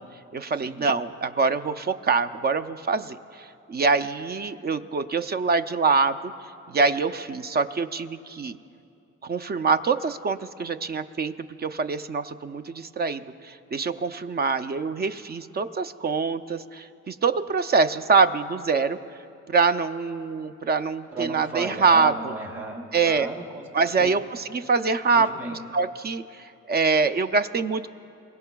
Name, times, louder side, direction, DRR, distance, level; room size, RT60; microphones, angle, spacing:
voice 1, 0.3-6.3 6.7-8.6 9.2-11.3 11.6-19.0 19.5-22.3 22.9-23.3 23.7-25.3 25.7-27.9, right 4 dB, 35° right, 11 dB, 0.5 m, -24 dB
voice 2, 21.1-23.6 24.0-24.2 25.1-25.6, right 3 dB, 50° right, -3 dB, 3.8 m, -35 dB
22.5 x 17.5 x 2.3 m, 2.6 s
cardioid pair, 90°, 30 cm